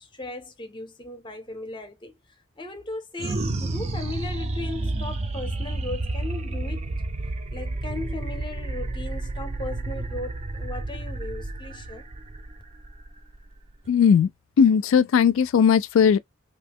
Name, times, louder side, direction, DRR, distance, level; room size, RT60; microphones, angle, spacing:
voice 1, 0.0-2.1 2.6-6.9 7.5-12.0, left 2 dB, 25° left, 0.6 m, -37 dB
sound 1, 3.2-13.9, right 2 dB, 30° right, 0.4 m, -31 dB
voice 2, 13.9-14.3 14.6-16.2, left 7 dB, 75° left, 0.3 m, -18 dB
2.8 x 2.2 x 3.4 m
head